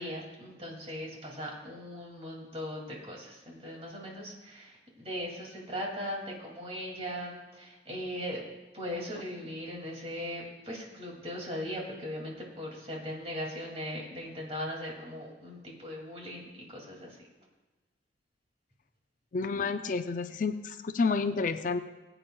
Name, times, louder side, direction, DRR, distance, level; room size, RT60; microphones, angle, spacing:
voice 1, 0.0-8.4 8.7-17.2, equal, 35° right, -1 dB, 2.4 m, -39 dB
voice 2, 19.3-21.8, left 4 dB, 45° left, 8 dB, 0.4 m, -30 dB
20.0 x 8.8 x 2.3 m, 1.2 s
head